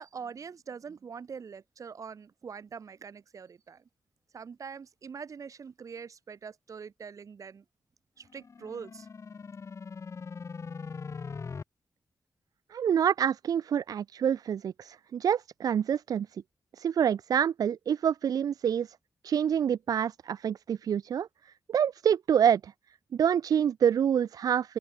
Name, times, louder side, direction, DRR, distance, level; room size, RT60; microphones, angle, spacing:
voice 1, 0.0-3.8 4.3-7.6 8.2-9.1, right 6 dB, 65° right, 6.3 m, -43 dB
sound 1, 8.3-11.6, left 5 dB, 50° left, 4.6 m, -41 dB
voice 2, 12.7-16.3 16.8-18.9 19.2-22.7 23.1-24.8, right 8 dB, 90° right, 0.7 m, -27 dB
open air
wide cardioid pair, 100°, 6 cm